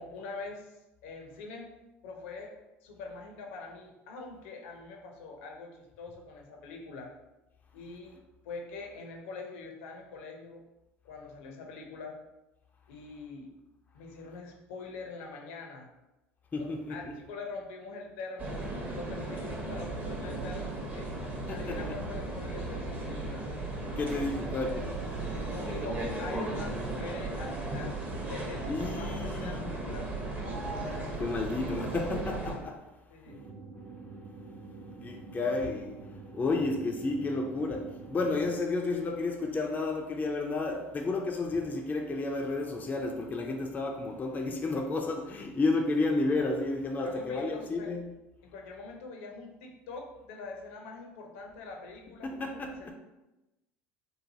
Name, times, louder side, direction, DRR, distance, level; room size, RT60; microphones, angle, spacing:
voice 1, 0.0-1.7 2.0-2.5 2.8-7.1 7.7-8.2 8.4-10.6 11.0-12.1 12.9-13.5 13.9-15.9 16.6-21.0 21.5-23.4 25.3-30.5 33.1-33.4 47.0-47.9 48.4-52.3 52.8-52.9, left 3 dB, 70° left, 1 dB, 0.6 m, -44 dB
voice 2, 16.5-17.1 21.5-21.8 24.0-25.0 28.7-29.6 30.9-32.8 35.0-36.0 36.3-48.0 52.2-52.8, left 3 dB, 25° left, 2 dB, 0.4 m, -31 dB
sound 1, 18.4-32.6, right 2 dB, 20° right, 0.8 m, -36 dB
sound 2, 33.3-38.5, right 3 dB, 55° right, 0.6 m, -47 dB
3.1 x 2.2 x 2.7 m, 1.0 s
hypercardioid pair, 70°, 7 cm